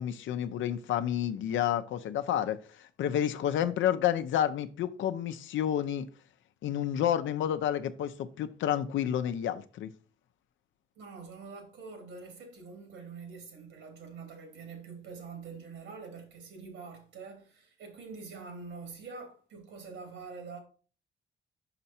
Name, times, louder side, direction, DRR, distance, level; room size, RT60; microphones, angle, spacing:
voice 1, 0.0-6.1 6.6-9.9, left 10 dB, 75° left, 0.7 m, -30 dB
voice 2, 3.0-3.3 11.0-20.6, right 4 dB, 80° right, 2.6 m, -45 dB
5.9 x 5.4 x 4.3 m
cardioid pair, 90°, 20 cm